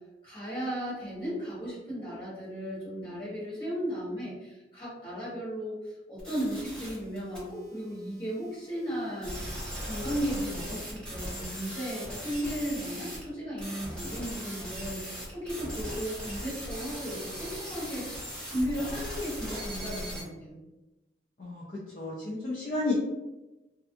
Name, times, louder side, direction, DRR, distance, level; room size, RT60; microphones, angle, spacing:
voice 1, 0.2-9.4 9.8-18.0 18.4-20.6, equal, 30° left, -9 dB, 1.2 m, -35 dB
sound 1, 6.2-7.4 9.2-13.2 13.6-20.2, equal, 5° left, 1.0 m, -38 dB
voice 2, 21.9-22.9, left 3 dB, 45° left, -5 dB, 0.4 m, -31 dB
2.4 x 2.3 x 2.6 m, 1.0 s
head